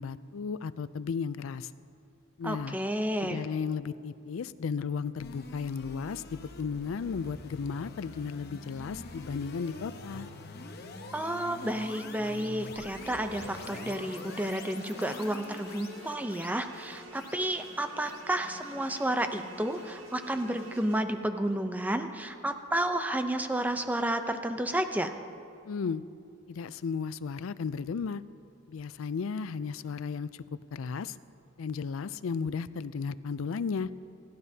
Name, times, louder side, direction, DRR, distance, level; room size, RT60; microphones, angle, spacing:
voice 1, 0.0-1.7 2.4-2.8 3.2-10.3 25.7-26.0 26.5-28.2 28.7-30.3 30.7-31.1 31.6-33.9, left 5 dB, 90° left, 16 dB, 0.4 m, -34 dB
voice 2, 2.4-3.4 11.1-25.1, right 1 dB, 10° right, 7 dB, 0.6 m, -31 dB
sound 1, 5.2-20.4, left 3 dB, 55° left, 0.9 m, -46 dB
sound 2, 12.9-21.0, right 1 dB, 80° right, 1.5 m, -49 dB
27.5 x 12.0 x 2.8 m, 2.5 s
head